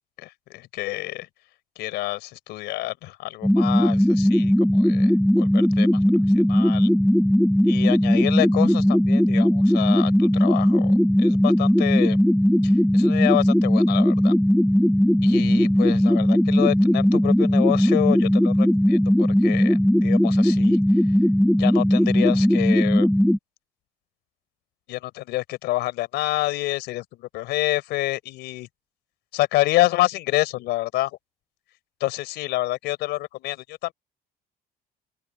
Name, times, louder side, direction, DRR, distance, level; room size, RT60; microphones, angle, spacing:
voice 1, 0.2-1.3 1.8-6.0 6.5-6.9 7.6-12.2 12.6-14.3 15.2-20.8 21.6-23.1 24.9-28.7 29.3-31.2 32.0-33.9, left 17 dB, 85° left, 4.3 m, -28 dB
sound 1, 3.4-23.4, equal, ahead, 0.8 m, -18 dB
open air
cardioid pair, 110°, 17 cm